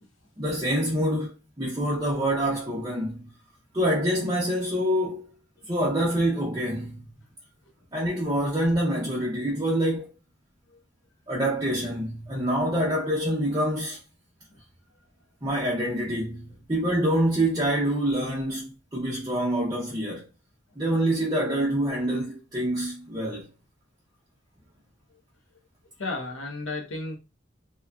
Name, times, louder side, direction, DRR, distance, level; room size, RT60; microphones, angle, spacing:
voice 1, 0.4-1.3 1.6-3.3 3.7-5.2 5.7-7.0 7.9-10.1 11.3-14.0 15.4-20.3 20.8-23.5, right 1 dB, 20° right, 0.6 m, -26 dB
voice 2, 26.0-27.2, left 2 dB, 85° left, 0.8 m, -33 dB
2.9 x 2.3 x 2.2 m
head